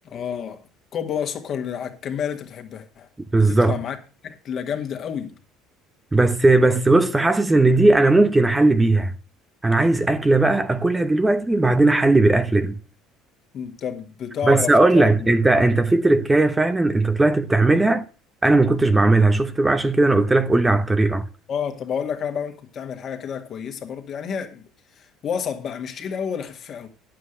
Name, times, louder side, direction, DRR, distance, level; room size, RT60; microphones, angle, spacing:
voice 1, 0.0-0.6 0.9-3.1 3.5-4.0 4.2-5.4 13.5-15.3 21.5-24.6 25.0-26.9, left 7 dB, 50° left, 2.1 m, -30 dB
voice 2, 3.3-3.7 6.1-9.1 9.6-12.8 14.4-18.1 18.4-21.3, right 2 dB, 15° right, 0.9 m, -17 dB
9.5 x 7.8 x 6.6 m
supercardioid pair, 80°, 0 cm